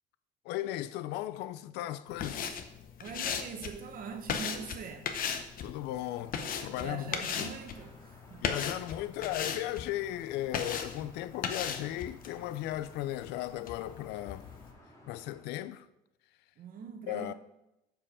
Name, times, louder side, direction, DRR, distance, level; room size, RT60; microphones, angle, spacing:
voice 1, 0.4-2.6 5.6-7.5 8.4-14.5 15.0-15.9 17.1-17.3, left 14 dB, 90° left, 0.4 m, -36 dB
sound 1, 2.1-14.7, left 7 dB, 55° left, 0.8 m, -38 dB
voice 2, 3.0-5.1 6.7-8.4 16.6-17.3, right 6 dB, 55° right, 1.1 m, -43 dB
sound 2, 6.1-15.4, left 1 dB, 20° left, 2.0 m, -57 dB
7.4 x 4.7 x 4.9 m
cardioid pair, 110°, 17 cm